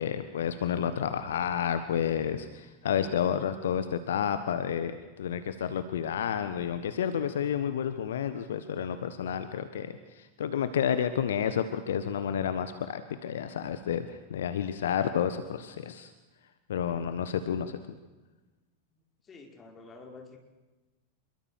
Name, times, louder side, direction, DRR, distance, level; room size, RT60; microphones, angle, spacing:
voice 1, 0.0-16.1 16.7-17.8, left 8 dB, 60° left, 11 dB, 1.3 m, -30 dB
voice 2, 19.2-20.4, left 4 dB, 20° left, 3 dB, 5.2 m, -48 dB
27.0 x 23.0 x 6.6 m, 1.2 s
figure-of-eight pair, 90°, 0 cm